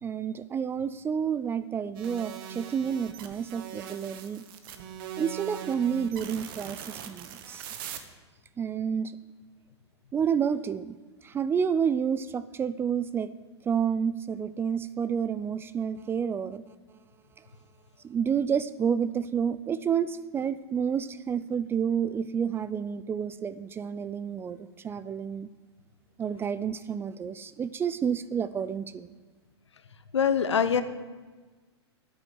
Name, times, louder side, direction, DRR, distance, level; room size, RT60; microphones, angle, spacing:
voice 1, 0.0-4.4 5.2-7.7 8.6-9.1 10.1-11.0 11.2-13.3 13.7-16.6 18.0-25.5 26.2-29.1, right 7 dB, 15° right, 14 dB, 0.4 m, -29 dB
sound 1, 2.0-8.0, right 9 dB, 50° right, 1.3 m, -41 dB
voice 2, 30.1-30.8, left 7 dB, 80° left, 12 dB, 0.9 m, -23 dB
10.0 x 8.7 x 8.2 m, 1.4 s
hypercardioid pair, 110°, 15 cm